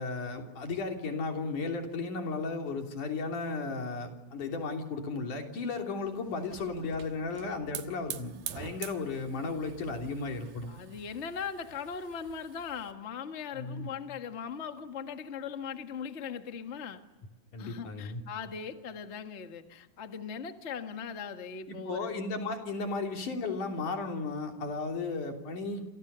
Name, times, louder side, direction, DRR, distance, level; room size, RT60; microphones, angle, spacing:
voice 1, 0.0-10.7 13.5-13.9 17.5-18.2 21.7-25.9, left 3 dB, 55° left, 3 dB, 4.5 m, -35 dB
Hiss / Fire, 6.1-12.9, right 10 dB, 85° right, 3.3 m, -46 dB
voice 2, 10.7-17.0 17.6-22.1, left 6 dB, 85° left, 6 dB, 0.6 m, -39 dB
28.5 x 28.0 x 6.9 m, 1.1 s
omnidirectional pair, 4.3 m